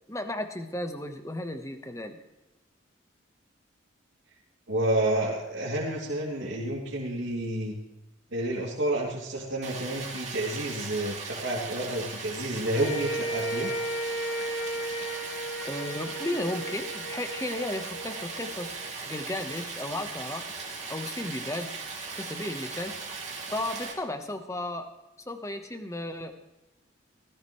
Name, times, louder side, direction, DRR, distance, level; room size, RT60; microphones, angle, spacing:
voice 1, 0.1-2.2 15.6-18.7 19.1-20.4 20.9-21.8 22.1-22.9 23.5-24.9 25.3-26.3, left 1 dB, 15° left, 7 dB, 1.2 m, -34 dB
voice 2, 4.7-7.7 8.3-13.7, right 1 dB, 70° right, -6 dB, 3.0 m, -30 dB
Stream, 9.6-23.9, right 4 dB, 35° right, 2.6 m, -38 dB
sound 1, 12.7-19.1, right 1 dB, 65° left, 2.8 m, -35 dB
17.0 x 15.0 x 3.3 m, 1.0 s
head